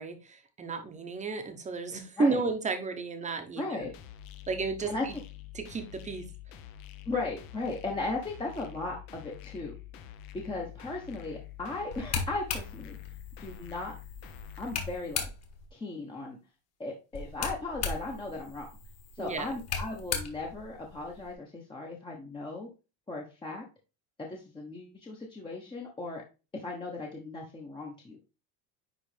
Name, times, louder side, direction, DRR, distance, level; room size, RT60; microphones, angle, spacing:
voice 1, 0.0-3.9 4.5-5.1 5.5-6.2 19.2-19.6, right 4 dB, 15° right, 1.0 m, -32 dB
voice 2, 3.5-3.9 4.8-5.0 7.1-9.7 10.3-13.0 13.4-13.9 14.6-15.3 15.7-16.4 16.8-18.7 19.2-22.7 23.1-23.6 24.2-26.2 26.6-28.2, left 3 dB, 10° left, 1.0 m, -37 dB
sound 1, 3.8-14.8, left 12 dB, 50° left, 0.9 m, -47 dB
sound 2, 11.9-15.7 17.1-21.3, left 5 dB, 35° left, 1.6 m, -38 dB
10.0 x 3.4 x 3.3 m
cardioid pair, 160°, 46 cm